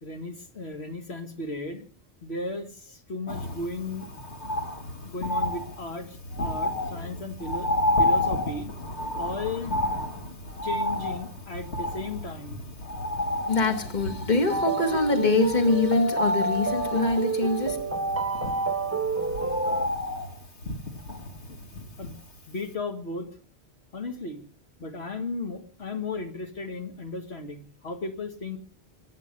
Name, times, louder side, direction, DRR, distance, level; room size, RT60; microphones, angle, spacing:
voice 1, 0.0-1.9 2.2-4.1 5.0-7.7 8.0-8.7 9.2-9.7 10.6-12.6 22.0-22.2 22.5-23.3 23.9-24.4 24.8-28.6, left 3 dB, 70° left, 5 dB, 2.1 m, -35 dB
Bird, 3.3-22.4 22.7-22.8, left 1 dB, 85° left, 2.3 m, -31 dB
voice 2, 13.5-17.8, left 3 dB, 40° left, 6 dB, 2.0 m, -24 dB
sound 1, 14.5-19.9, right 3 dB, 15° right, 0.8 m, -28 dB
24.0 x 9.4 x 5.3 m, 0.42 s
omnidirectional pair, 1.1 m